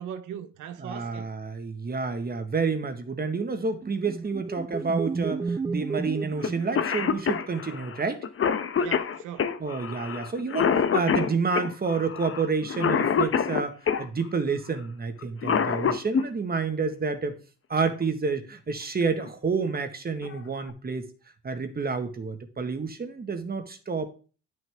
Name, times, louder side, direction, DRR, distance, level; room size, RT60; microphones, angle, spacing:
voice 1, 0.0-1.3 8.8-9.5, right 9 dB, 90° right, 1.0 m, -39 dB
voice 2, 0.8-8.2 9.6-17.3 17.7-21.1 21.4-24.1, right 4 dB, 30° right, 1.5 m, -29 dB
sound 1, 3.5-7.5, right 4 dB, 15° right, 0.4 m, -33 dB
Cough, 6.4-6.5 6.7-14.1 15.2-16.2 17.9-18.0 19.0-19.3 19.7-19.8 20.2-20.7, left 7 dB, 45° left, 1.0 m, -26 dB
10.5 x 6.4 x 3.5 m
cardioid pair, 90°, 30 cm